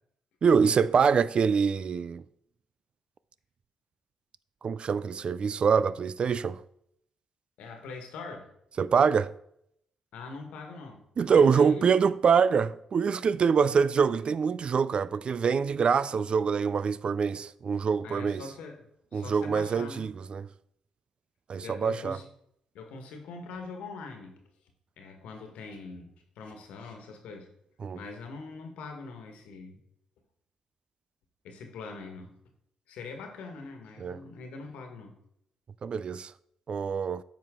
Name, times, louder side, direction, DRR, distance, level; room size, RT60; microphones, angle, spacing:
voice 1, 0.4-2.2 4.6-6.6 8.8-9.3 11.2-18.4 19.1-20.5 21.5-22.2 27.8-28.0 34.0-34.2 35.8-36.3 36.7-37.2, right 6 dB, 55° right, 0.4 m, -25 dB
voice 2, 7.6-8.5 10.1-11.9 18.0-18.8 19.1-20.1 21.6-22.3 22.7-24.4 25.0-27.5 27.9-29.8 31.4-32.4 32.9-35.2, left 4 dB, 80° left, 1.5 m, -43 dB
9.6 x 5.7 x 3.7 m
supercardioid pair, 50°, 2 cm